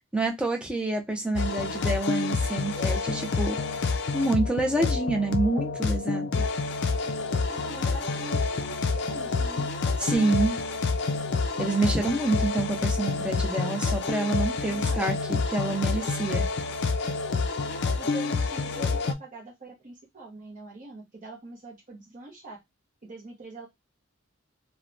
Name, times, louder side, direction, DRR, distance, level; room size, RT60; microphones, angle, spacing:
voice 1, 0.1-3.6 4.1-6.3 10.0-10.6 11.6-16.4, right 2 dB, 5° right, 0.4 m, -27 dB
sound 1, 1.3-19.1, left 4 dB, 55° left, 0.4 m, -28 dB
voice 2, 7.5-9.7 14.6-15.2 18.0-22.6 23.0-23.7, right 2 dB, 40° right, 0.7 m, -44 dB
3.1 x 2.1 x 2.5 m
head